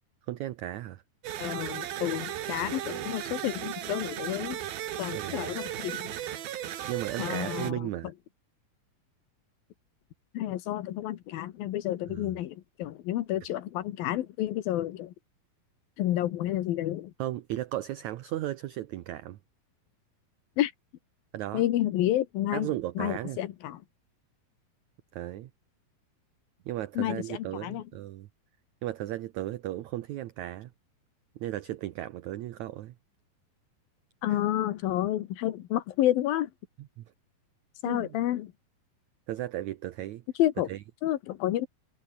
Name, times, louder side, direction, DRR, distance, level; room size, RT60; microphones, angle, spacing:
voice 1, 0.3-1.0 5.1-5.5 6.9-8.1 12.1-12.3 17.2-19.4 21.3-21.6 22.5-23.4 25.1-25.5 26.7-28.3 28.8-30.7 31.4-33.0 34.3-34.4 36.8-37.0 37.8-38.2 39.3-40.2 40.7-40.8, right 14 dB, 70° right, 1.9 m, -35 dB
sound 1, 1.2-7.7, right 11 dB, 85° right, 3.6 m, -36 dB
voice 2, 1.4-4.6 5.0-6.1 7.2-7.9 10.3-15.1 16.0-17.1 20.6-20.7 21.5-22.7 23.0-23.8 27.0-27.8 34.2-36.5 37.8-38.5 40.4-40.7 41.0-41.7, left 13 dB, 85° left, 3.1 m, -30 dB
omnidirectional pair, 4.1 m